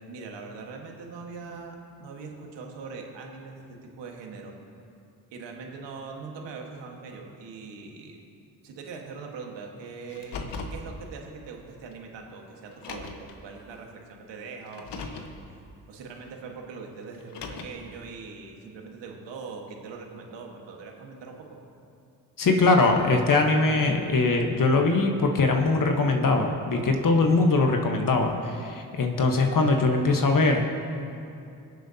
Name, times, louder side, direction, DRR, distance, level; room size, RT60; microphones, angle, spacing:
voice 1, 0.0-4.5 5.3-8.2 8.6-10.4 10.7-15.3 15.9-21.4, right 4 dB, 80° right, 1 dB, 1.6 m, -41 dB
Car, 10.1-10.8 11.9-12.0 12.7-13.3 14.7-15.3 17.1-17.9, left 4 dB, 70° left, 1.3 m, -38 dB
voice 2, 22.4-30.6, left 3 dB, 50° left, 3 dB, 1.3 m, -22 dB
23.0 x 7.7 x 2.8 m, 2.7 s
supercardioid pair, 50°, 43 cm